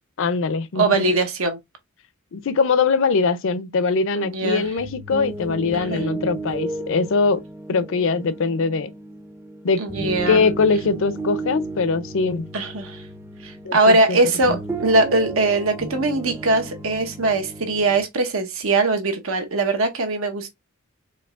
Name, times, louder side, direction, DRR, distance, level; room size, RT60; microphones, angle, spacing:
voice 1, 0.2-1.1 2.3-7.4 7.7-8.9 9.6-9.8 10.3-12.5 13.6-14.2 14.5-14.6, left 4 dB, 65° left, 0.5 m, -22 dB
voice 2, 0.8-1.6 4.1-4.7 5.7-6.0 9.8-10.4 12.5-13.0 13.4-20.5, right 2 dB, 70° right, 1.0 m, -21 dB
sound 1, 4.7-18.0, right 2 dB, 10° right, 0.5 m, -34 dB
4.5 x 3.2 x 2.3 m
head